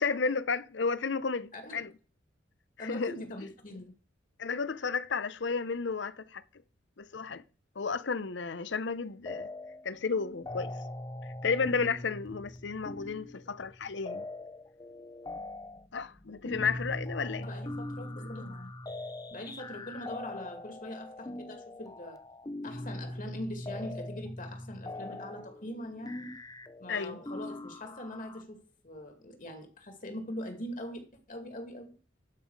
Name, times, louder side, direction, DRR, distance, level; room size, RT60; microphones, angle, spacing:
voice 1, 0.0-1.9 2.8-3.2 4.4-6.4 7.0-7.4 7.8-9.5 9.8-10.7 11.4-14.3 15.9-17.5 26.9-27.2, left 5 dB, 65° left, 0.7 m, -32 dB
voice 2, 2.8-3.9 17.4-18.7 19.3-22.2 22.6-26.3 26.8-31.9, left 1 dB, 45° left, 2.2 m, -42 dB
sound 1, 9.3-9.9 10.1-28.4, left 1 dB, 20° left, 0.6 m, -42 dB
12.5 x 5.6 x 4.7 m
head